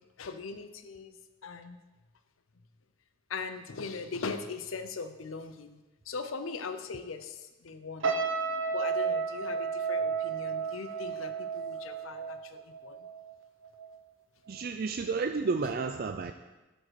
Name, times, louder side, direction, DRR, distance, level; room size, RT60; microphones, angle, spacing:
voice 1, 0.2-1.2 1.4-1.8 3.3-5.8 6.1-8.1 8.7-13.0, left 4 dB, 85° left, 9 dB, 0.7 m, -40 dB
sound 1, 8.0-13.3 13.6-13.9, right 5 dB, 70° right, 1.0 m, -32 dB
voice 2, 14.5-16.3, right 4 dB, 50° right, 7 dB, 0.4 m, -31 dB
11.5 x 5.3 x 6.4 m, 1.1 s
head